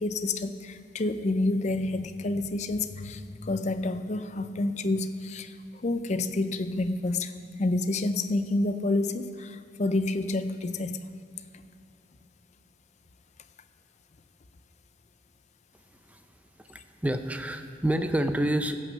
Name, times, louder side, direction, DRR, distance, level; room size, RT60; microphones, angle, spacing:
voice 1, 0.0-5.5 5.8-7.3 7.6-11.0, left 2 dB, 40° left, 10 dB, 0.5 m, -28 dB
voice 2, 16.7-18.7, right 1 dB, 10° right, 8 dB, 0.5 m, -28 dB
16.0 x 6.0 x 6.9 m, 2.4 s
head